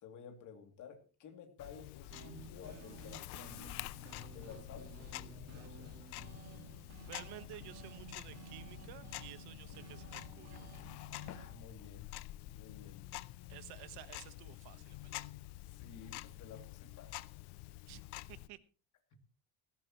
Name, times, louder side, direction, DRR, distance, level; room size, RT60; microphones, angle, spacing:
voice 1, 0.0-3.9 4.3-6.0 11.3-12.1 12.5-13.3 15.7-17.3 19.1-19.2, left 6 dB, 50° left, 4 dB, 2.7 m, -54 dB
Tick-tock, 1.6-18.5, left 18 dB, 80° left, 0.7 m, -48 dB
sound 1, 2.1-11.5, right 6 dB, 40° right, 2.0 m, -54 dB
voice 2, 7.1-10.7 13.5-15.3 17.9-18.0 18.3-18.6, right 14 dB, 85° right, 13 dB, 1.3 m, -53 dB
17.5 x 15.0 x 3.0 m, 0.35 s
cardioid pair, 165°, 39 cm